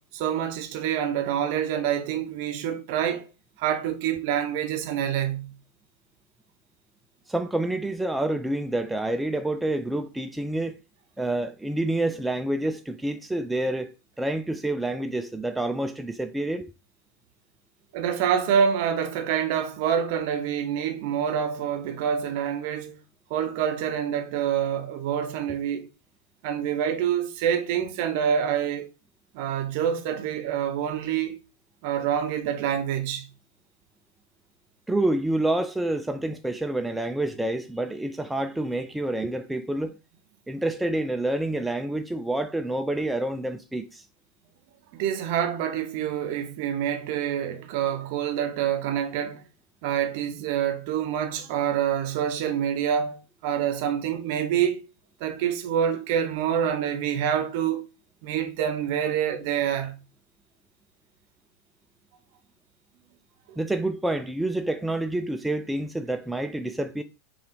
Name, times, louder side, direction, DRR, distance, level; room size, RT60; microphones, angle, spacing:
voice 1, 0.0-3.3 3.6-5.6 17.9-23.0 23.3-25.9 26.4-28.9 29.3-31.4 31.8-33.3 44.9-49.4 49.8-54.8 55.2-57.9 58.2-60.0 63.5-63.6, right 9 dB, 45° right, 0.7 m, -26 dB
voice 2, 7.3-10.8 11.2-13.9 14.2-16.7 34.9-39.9 40.5-44.0 63.6-67.0, right 1 dB, 5° right, 0.3 m, -28 dB
5.4 x 2.4 x 3.7 m
figure-of-eight pair, 90°, 0 cm